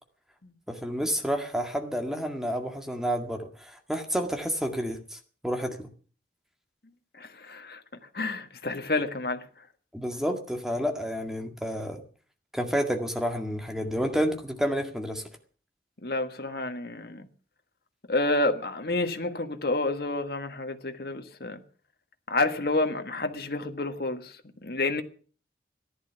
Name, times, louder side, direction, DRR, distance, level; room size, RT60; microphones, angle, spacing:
voice 1, 0.7-5.9 9.9-12.0 12.5-15.2, equal, 5° right, 1.9 m, -30 dB
voice 2, 7.2-7.8 8.1-9.5 16.0-17.3 18.1-21.6 22.3-25.0, left 2 dB, 60° left, 1.6 m, -29 dB
14.5 x 11.0 x 6.9 m
head